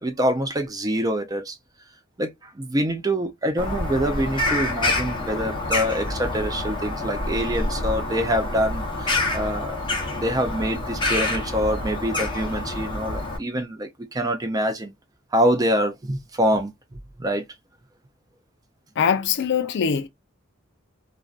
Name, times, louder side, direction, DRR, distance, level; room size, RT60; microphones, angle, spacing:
voice 1, 0.0-1.6 2.2-9.8 10.1-14.9 15.3-17.4, equal, 20° right, 0.4 m, -25 dB
Bird vocalization bird call bird song, 3.6-13.4, left 2 dB, 25° left, 0.8 m, -27 dB
voice 2, 19.0-20.1, left 7 dB, 60° left, 0.4 m, -22 dB
2.5 x 2.2 x 2.4 m
head